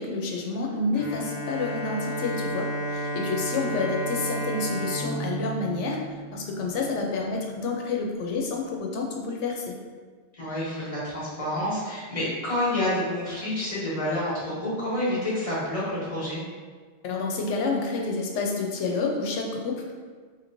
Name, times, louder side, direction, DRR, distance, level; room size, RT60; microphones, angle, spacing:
voice 1, 0.0-6.0 6.3-9.7 17.0-19.9, left 3 dB, 90° left, 1 dB, 0.9 m, -29 dB
Bowed string instrument, 0.9-6.6, right 1 dB, 35° right, 1.1 m, -32 dB
voice 2, 10.4-16.4, left 1 dB, 30° left, -8 dB, 1.1 m, -28 dB
3.1 x 2.9 x 2.6 m, 1.5 s
omnidirectional pair, 1.2 m